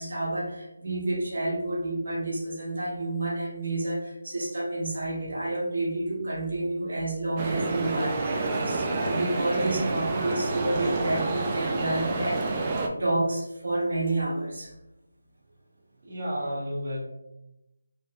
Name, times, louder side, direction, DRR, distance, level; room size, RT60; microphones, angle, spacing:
voice 1, 0.0-14.7, right 2 dB, 70° right, -4 dB, 1.0 m, -29 dB
sound 1, 7.4-12.9, right 3 dB, 25° right, 0.4 m, -29 dB
voice 2, 16.0-17.0, equal, 45° right, -6 dB, 0.9 m, -31 dB
3.0 x 2.9 x 2.3 m, 0.91 s
figure-of-eight pair, 165°, 0 cm